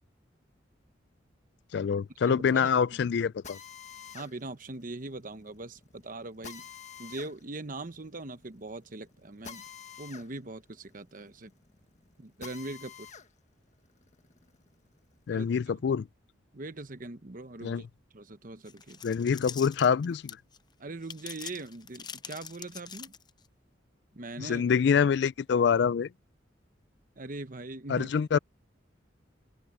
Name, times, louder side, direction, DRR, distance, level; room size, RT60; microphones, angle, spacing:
voice 1, 1.7-3.6 15.3-16.1 17.6-17.8 19.0-20.4 24.4-26.1 27.9-28.4, left 6 dB, 60° left, 0.3 m, -26 dB
voice 2, 2.3-2.7 4.1-6.7 7.0-9.6 10.0-11.5 12.2-13.1 15.3-15.8 16.5-17.9 18.1-19.0 20.8-23.1 24.1-24.6 27.2-28.1, right 2 dB, 45° right, 1.0 m, -41 dB
Drill, 3.4-13.3 13.7-15.3, left 7 dB, 40° left, 1.4 m, -49 dB
sound 1, 18.6-20.6 21.0-23.5, left 7 dB, 25° left, 0.6 m, -43 dB
open air
head